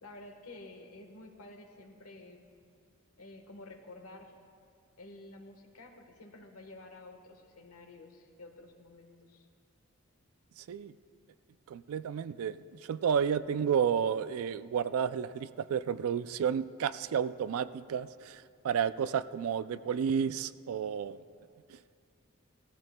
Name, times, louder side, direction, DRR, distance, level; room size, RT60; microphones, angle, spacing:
voice 1, 0.0-2.4 3.2-4.3 5.0-9.5, left 2 dB, 85° left, 4 dB, 1.3 m, -51 dB
voice 2, 11.7-21.2, right 7 dB, 75° right, 14 dB, 0.3 m, -31 dB
18.5 x 14.5 x 2.2 m, 2.3 s
head